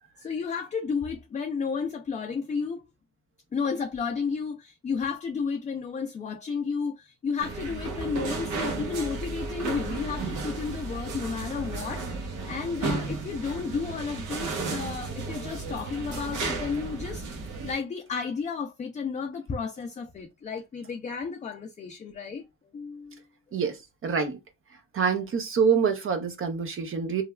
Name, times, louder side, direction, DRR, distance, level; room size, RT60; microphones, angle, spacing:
voice 1, 0.2-2.9 3.5-22.5 22.7-23.2, left 5 dB, 25° left, 0.4 m, -32 dB
sound 1, 7.4-17.7, right 3 dB, 80° right, 1.0 m, -33 dB
voice 2, 23.5-24.4 24.9-27.2, right 6 dB, 45° right, 0.6 m, -26 dB
3.2 x 2.2 x 2.2 m
cardioid pair, 90°, 30 cm